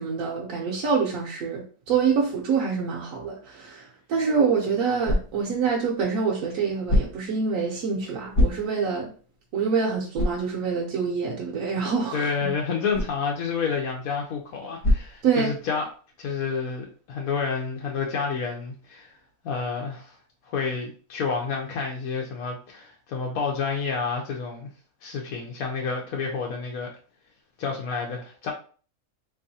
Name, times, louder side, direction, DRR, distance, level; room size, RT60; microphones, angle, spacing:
voice 1, 0.0-9.1 9.5-12.5 15.2-15.5, right 5 dB, 70° right, -2 dB, 1.1 m, -26 dB
sound 1, 4.2-15.9, left 1 dB, 60° left, 1.1 m, -31 dB
voice 2, 12.1-15.9 16.2-19.1 19.4-20.1 20.5-24.7 25.0-26.9 27.6-28.5, left 5 dB, 80° left, 0 dB, 1.1 m, -29 dB
3.5 x 3.0 x 2.7 m, 0.40 s
omnidirectional pair, 1.5 m